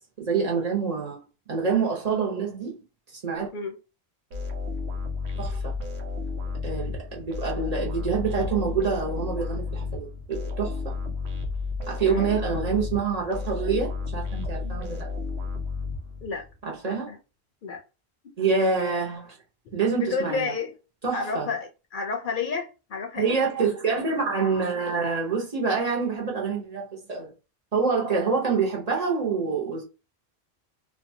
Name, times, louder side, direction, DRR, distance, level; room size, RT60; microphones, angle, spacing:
voice 1, 0.2-1.2 1.5-2.7 3.1-3.5 5.4-5.8 6.6-10.9 11.9-15.1 16.7-17.1 18.4-19.4 19.7-20.5 21.0-21.5 23.2-27.3 27.7-29.8, right 5 dB, 40° right, 0.9 m, -26 dB
sound 1, 4.3-16.5, left 4 dB, 80° right, 1.0 m, -32 dB
voice 2, 12.1-12.4 16.2-16.4 16.8-17.2 17.6-17.8 20.0-20.8 21.1-23.3, left 5 dB, 60° left, 0.7 m, -31 dB
2.7 x 2.3 x 2.6 m
omnidirectional pair, 1.1 m